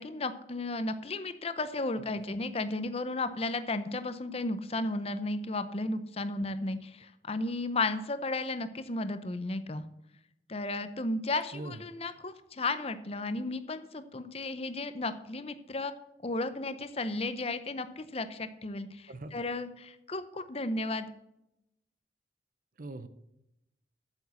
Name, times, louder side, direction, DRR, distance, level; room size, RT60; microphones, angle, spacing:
voice 1, 0.0-9.8 10.5-15.9 16.2-21.1, left 2 dB, 35° left, 11 dB, 0.7 m, -34 dB
voice 2, 1.9-2.2 11.5-11.8 19.1-19.4 22.8-23.1, right 2 dB, 50° right, 13 dB, 0.6 m, -42 dB
8.4 x 7.2 x 8.1 m, 0.87 s
head